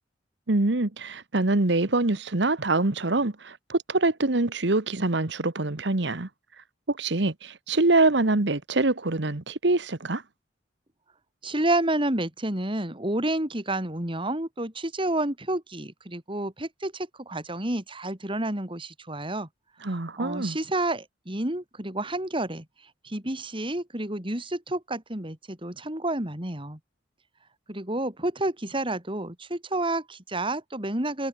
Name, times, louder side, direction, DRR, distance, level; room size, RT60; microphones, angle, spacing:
voice 1, 0.5-6.3 6.9-10.2 19.8-20.6, right 2 dB, 70° right, 1.4 m, -24 dB
voice 2, 11.4-19.5 20.2-22.6 23.0-26.8 27.7-31.3, right 1 dB, 30° right, 3.6 m, -30 dB
head